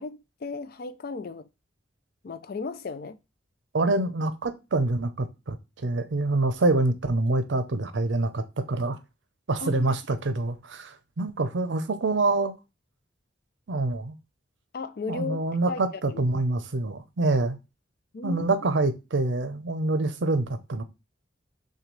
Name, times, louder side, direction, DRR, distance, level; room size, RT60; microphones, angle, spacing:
voice 1, 0.0-1.5 2.2-3.2 9.6-9.9 14.7-15.4 15.7-15.8 16.1-16.4 18.1-18.5, left 4 dB, 50° left, 0.4 m, -35 dB
voice 2, 3.7-9.0 9.5-12.5 13.7-14.2 15.1-17.6 18.2-20.8, right 2 dB, 75° right, 0.6 m, -26 dB
6.4 x 2.3 x 3.1 m
head